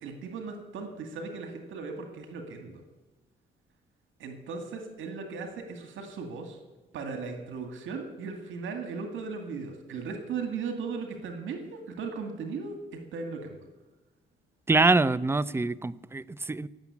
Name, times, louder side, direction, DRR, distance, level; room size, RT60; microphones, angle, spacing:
voice 1, 0.0-2.8 4.2-6.6 6.9-13.7, right 4 dB, 80° right, 5 dB, 2.2 m, -37 dB
voice 2, 14.7-16.7, right 3 dB, 10° right, 17 dB, 0.5 m, -24 dB
16.5 x 7.2 x 9.8 m, 1.2 s
cardioid pair, 90°, 20 cm